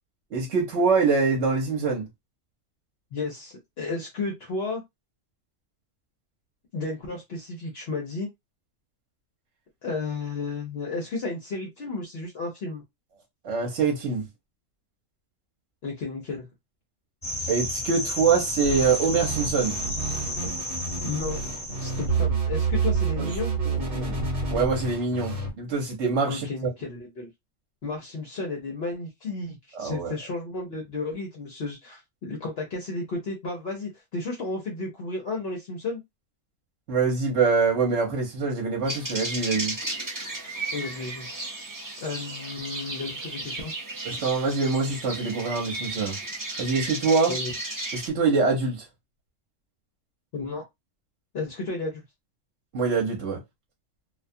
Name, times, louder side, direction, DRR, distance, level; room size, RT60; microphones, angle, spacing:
voice 1, 0.3-2.1 13.4-14.3 17.5-19.8 23.2-23.3 23.7-24.2 24.5-26.5 29.7-30.1 36.9-39.7 44.0-46.2 46.6-47.3 47.9-48.9 52.7-53.4, right 4 dB, 65° right, 1.1 m, -24 dB
voice 2, 3.1-4.8 6.7-8.3 9.8-12.8 15.8-16.5 20.4-20.5 21.0-21.4 21.8-23.5 26.3-27.3 27.8-36.0 40.7-41.3 42.0-43.7 47.3-47.5 50.3-50.6 51.3-52.0, left 3 dB, 60° left, 0.9 m, -33 dB
sound 1, 17.2-22.2, left 1 dB, 15° left, 1.1 m, -32 dB
sound 2, 18.6-25.5, right 4 dB, 50° right, 1.1 m, -29 dB
sound 3, 38.8-48.1, right 2 dB, 25° right, 0.5 m, -34 dB
2.5 x 2.3 x 2.6 m
omnidirectional pair, 1.3 m